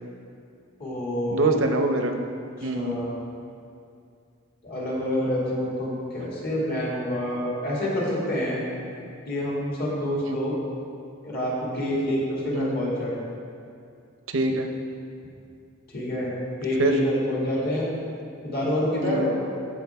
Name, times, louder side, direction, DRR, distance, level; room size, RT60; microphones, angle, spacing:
voice 1, 0.8-1.5 2.6-3.1 4.6-8.7 9.3-10.6 11.2-13.2 15.9-16.3 16.6-17.9 18.4-19.3, equal, 50° left, -5 dB, 2.2 m, -27 dB
voice 2, 1.3-2.2 2.6-3.0 10.3-10.4 12.6-12.8 14.3-14.7 16.8-16.9 19.0-19.3, right 2 dB, 75° right, 5 dB, 0.7 m, -24 dB
14.0 x 4.8 x 3.5 m, 2.4 s
head